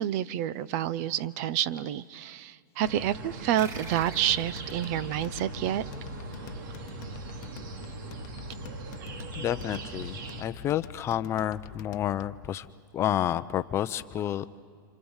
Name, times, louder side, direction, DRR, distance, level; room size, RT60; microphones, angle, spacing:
voice 1, 0.0-5.8, right 11 dB, 45° right, 18 dB, 0.8 m, -29 dB
sound 1, 2.8-10.4, right 2 dB, 65° right, 2.7 m, -40 dB
sound 2, 3.6-6.5, right 4 dB, 25° right, 1.3 m, -48 dB
sound 3, 3.7-12.5, left 11 dB, 50° left, 0.9 m, -47 dB
voice 2, 9.3-12.7 12.9-14.5, left 11 dB, 25° left, 13 dB, 0.7 m, -30 dB
30.0 x 27.0 x 7.3 m, 2.3 s
supercardioid pair, 145°, 11 cm